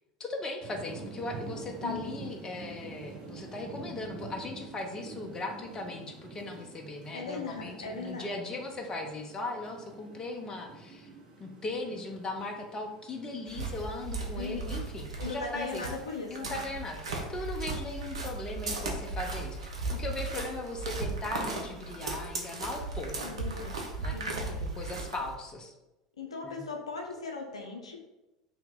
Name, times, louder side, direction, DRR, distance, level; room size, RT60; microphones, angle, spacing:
voice 1, 0.2-11.1 11.4-15.8 16.3-23.3 24.0-24.3 24.6-25.7 26.4-26.6, left 2 dB, 20° left, 2 dB, 0.5 m, -38 dB
sound 1, 0.6-17.4, right 3 dB, 30° right, 0.7 m, -48 dB
voice 2, 7.1-8.6 14.4-14.8 15.2-16.7 23.2-23.8 24.1-24.6 26.2-28.0, left 4 dB, 75° left, 2 dB, 0.5 m, -39 dB
sound 2, 13.5-25.4, right 3 dB, 70° right, 0.6 m, -36 dB
2.9 x 2.8 x 3.5 m, 0.97 s
figure-of-eight pair, 75°, 3 cm